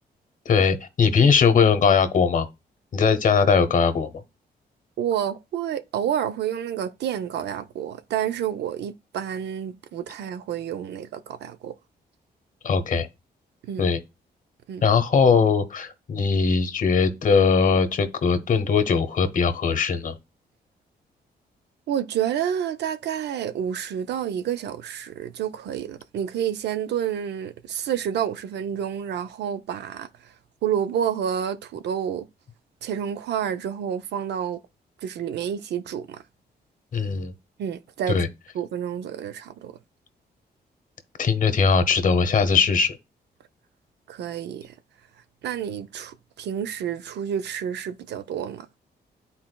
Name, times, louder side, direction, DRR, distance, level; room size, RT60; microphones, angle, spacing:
voice 1, 0.5-2.5 2.9-4.2 12.6-13.1 13.8-14.0 14.8-20.1 36.9-37.3 38.1-38.3 41.2-43.0, left 5 dB, 50° left, 0.9 m, -20 dB
voice 2, 5.0-11.7 13.6-13.9 14.7-14.8 21.9-30.3 30.6-32.3 32.8-34.6 35.0-36.2 37.6-38.3 38.5-39.7 44.1-44.7 45.4-48.7, right 9 dB, 85° right, 0.5 m, -29 dB
10.5 x 4.2 x 2.2 m
cardioid pair, 105°, 17 cm